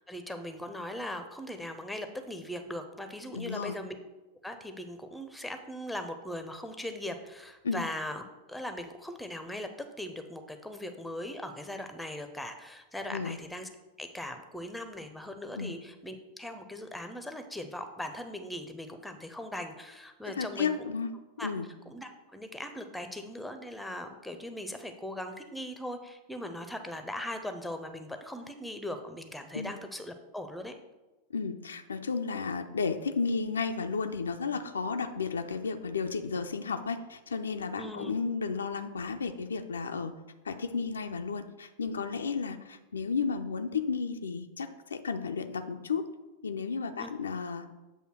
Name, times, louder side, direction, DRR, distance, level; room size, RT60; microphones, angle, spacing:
voice 1, 0.1-4.0 4.4-8.2 8.5-9.7 10.0-13.7 14.0-20.9 21.4-21.5 21.9-30.7 37.8-38.1 47.0-47.1, left 1 dB, 5° left, 7 dB, 0.6 m, -39 dB
voice 2, 3.3-3.8 7.6-7.8 13.1-13.4 15.6-15.7 20.3-21.1 21.4-21.7 29.5-29.7 31.3-40.2 40.4-46.1 46.4-47.7, left 5 dB, 70° left, 7 dB, 0.4 m, -33 dB
7.8 x 2.7 x 5.9 m, 1.1 s
figure-of-eight pair, 90°, 0 cm